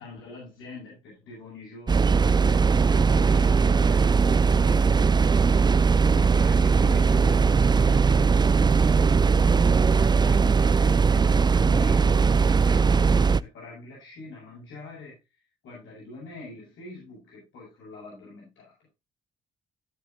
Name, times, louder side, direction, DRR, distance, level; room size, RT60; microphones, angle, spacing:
voice 1, 0.0-5.3 6.1-8.9 9.3-15.2 15.6-18.8, left 3 dB, 80° left, -5 dB, 7.1 m, -44 dB
sound 1, 1.9-13.4, right 5 dB, 20° right, 0.4 m, -20 dB
16.0 x 6.4 x 2.8 m, 0.25 s
cardioid pair, 90°, 20 cm